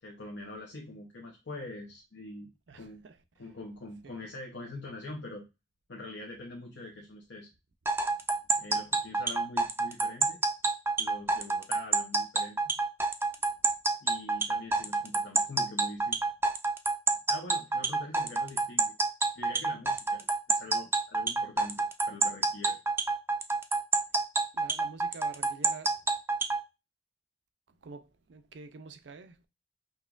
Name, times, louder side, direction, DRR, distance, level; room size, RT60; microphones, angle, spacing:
voice 1, 0.0-2.5 2.7-3.0 3.4-5.5 5.9-7.5 8.6-10.4 11.0-12.7 14.0-16.2 17.3-18.9 19.3-22.8, left 2 dB, 75° left, 0.8 m, -44 dB
voice 2, 2.7-3.1 4.0-4.2 24.5-25.9 27.8-29.5, right 4 dB, 70° right, 0.5 m, -47 dB
sound 1, 7.8-26.6, right 3 dB, 15° right, 0.4 m, -27 dB
5.2 x 3.0 x 2.4 m
head